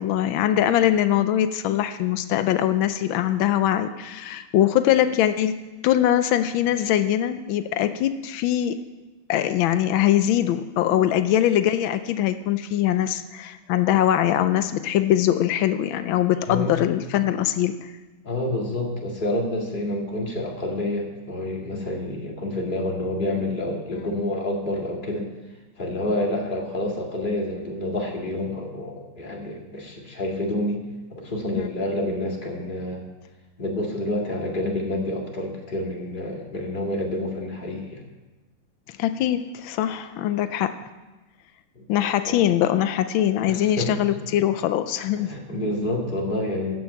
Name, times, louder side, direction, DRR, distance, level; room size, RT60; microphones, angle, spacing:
voice 1, 0.0-5.5 5.8-8.8 9.3-17.9 31.5-31.7 39.0-40.8 41.9-45.3, left 11 dB, 90° left, 10 dB, 1.4 m, -22 dB
voice 2, 16.5-16.8 18.2-25.3 25.8-30.8 31.1-33.0 33.6-38.0 41.8-41.9 42.2-42.4 43.5-44.0 45.2-46.7, left 1 dB, 25° left, -1 dB, 2.1 m, -28 dB
13.5 x 6.4 x 8.3 m, 1.2 s
omnidirectional pair, 2.1 m